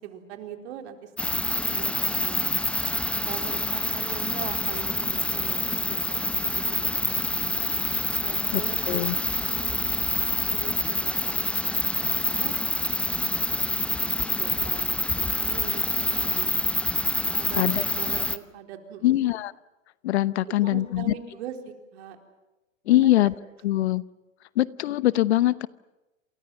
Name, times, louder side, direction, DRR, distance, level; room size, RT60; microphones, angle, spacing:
voice 1, 0.0-2.5 3.2-7.7 8.2-9.8 10.5-12.5 14.0-16.5 17.3-19.2 20.5-22.2 22.9-23.2, right 9 dB, 55° right, 5 dB, 4.2 m, -41 dB
sound 1, 1.2-18.4, left 2 dB, 5° left, 0.9 m, -27 dB
voice 2, 8.5-9.1 17.6-17.8 19.0-19.5 20.0-21.1 22.9-23.3 23.6-24.0 24.6-25.7, left 15 dB, 55° left, 18 dB, 0.9 m, -22 dB
29.0 x 27.5 x 6.0 m, 1.0 s
hypercardioid pair, 110°, 40 cm